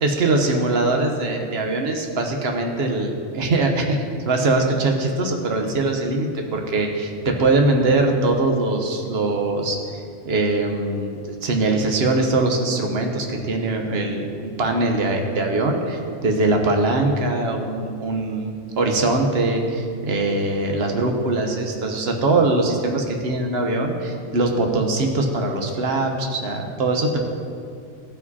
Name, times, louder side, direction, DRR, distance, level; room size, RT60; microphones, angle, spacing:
voice 1, 0.0-27.2, right 2 dB, 55° right, 3 dB, 1.2 m, -22 dB
14.5 x 4.9 x 4.1 m, 2.4 s
omnidirectional pair, 1.3 m